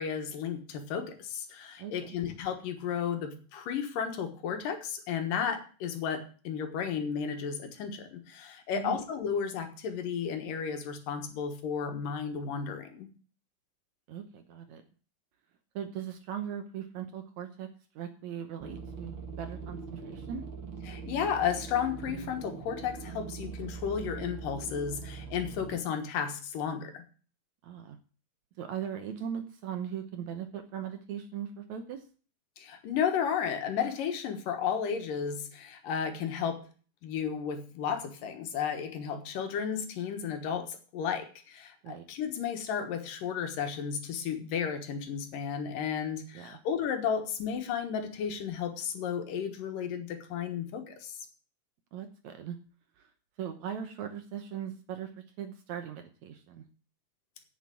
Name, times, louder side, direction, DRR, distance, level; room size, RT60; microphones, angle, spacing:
voice 1, 0.0-13.1 20.9-27.0 32.6-36.6 37.0-51.2, left 7 dB, 70° left, 6 dB, 2.9 m, -33 dB
voice 2, 1.8-2.2 8.7-9.0 14.1-14.8 15.8-17.7 18.0-20.4 27.6-28.0 28.6-32.0 41.8-42.0 46.3-46.6 51.9-52.6 53.0-53.1 53.4-55.1 55.4-56.7, right 9 dB, 70° right, 7 dB, 1.9 m, -39 dB
sound 1, 18.6-25.8, right 5 dB, 50° right, 1.6 m, -42 dB
8.2 x 7.7 x 8.5 m, 0.39 s
omnidirectional pair, 4.1 m